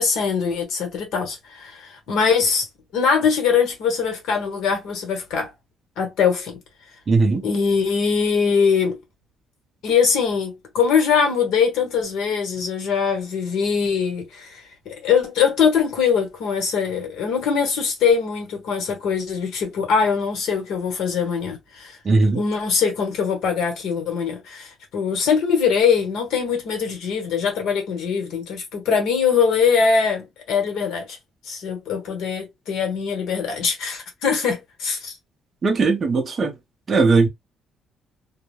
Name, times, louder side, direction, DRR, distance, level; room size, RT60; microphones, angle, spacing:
voice 1, 0.0-2.6 2.9-5.5 6.0-6.6 7.3-9.0 9.8-14.6 14.8-22.0 22.2-31.2 31.5-35.1, left 6 dB, 90° left, 1.1 m, -22 dB
voice 2, 7.1-7.4 22.1-22.4 35.6-36.5 36.9-37.3, right 3 dB, 25° right, 0.5 m, -18 dB
2.2 x 2.1 x 3.0 m
cardioid pair, 180°, 0 cm